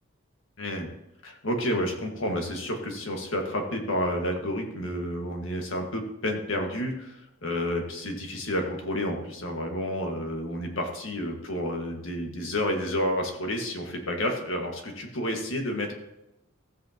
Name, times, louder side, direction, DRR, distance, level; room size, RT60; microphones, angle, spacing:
voice 1, 0.6-0.9 1.2-15.9, equal, 70° left, 2 dB, 1.7 m, -30 dB
14.5 x 8.1 x 2.9 m, 0.89 s
head